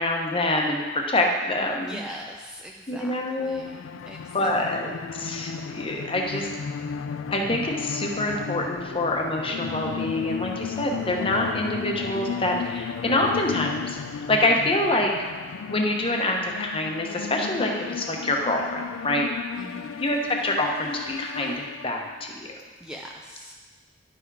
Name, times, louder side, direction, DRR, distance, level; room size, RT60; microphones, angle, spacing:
voice 1, 0.0-2.0 2.9-3.7 4.3-6.5 7.3-14.0 14.3-15.1 15.7-19.3 20.0-22.5, left 1 dB, 25° left, 1 dB, 0.9 m, -26 dB
voice 2, 1.8-5.3 19.6-20.0 22.8-23.5, equal, 5° right, -1 dB, 0.4 m, -42 dB
sound 1, 3.5-22.3, left 6 dB, 75° left, 0.4 m, -34 dB
10.5 x 5.9 x 4.7 m, 1.4 s
head